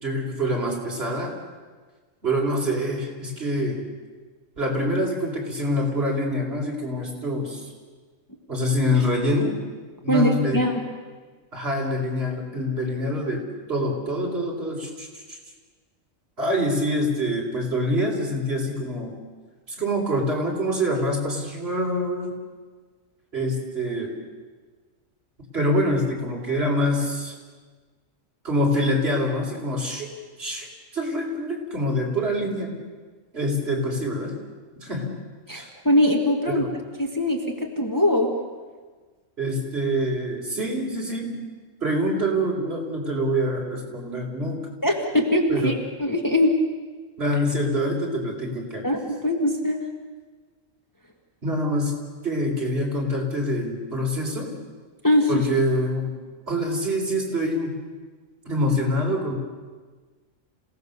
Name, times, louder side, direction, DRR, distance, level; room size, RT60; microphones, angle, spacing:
voice 1, 0.0-1.3 2.2-3.8 4.6-7.6 8.5-9.5 10.0-10.6 11.5-13.4 13.7-15.4 16.4-19.1 19.7-22.3 23.3-24.1 25.5-27.3 28.4-30.1 30.4-30.7 30.9-32.7 33.3-34.3 34.8-35.1 35.5-35.7 36.5-36.6 39.4-41.4 41.8-44.6 45.5-45.8 47.2-48.9 51.4-51.9 52.2-54.5 55.3-56.1 56.5-57.7 58.4-59.3, equal, 50° right, -1 dB, 4.6 m, -25 dB
voice 2, 10.1-10.8 35.5-36.6 37.0-38.3 44.8-45.7 46.0-46.5 48.8-49.8 55.0-55.4, left 1 dB, 15° left, 1 dB, 1.9 m, -21 dB
27.5 x 17.5 x 6.9 m, 1.4 s
omnidirectional pair, 1.4 m